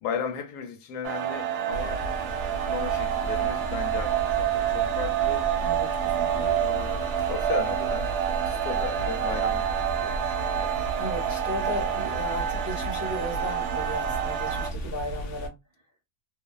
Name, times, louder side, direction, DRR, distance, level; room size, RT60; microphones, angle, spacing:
voice 1, 0.0-2.1 2.7-5.5 6.4-8.1 8.4-9.7 10.0-10.8, left 7 dB, 80° left, 1.2 m, -36 dB
sound 1, 1.0-14.7, right 10 dB, 75° right, 1.0 m, -28 dB
sound 2, 1.7-15.5, right 1 dB, 60° left, 0.8 m, -35 dB
voice 2, 5.6-6.4 11.0-15.5, equal, 15° right, 0.8 m, -35 dB
2.8 x 2.0 x 2.2 m
omnidirectional pair, 1.7 m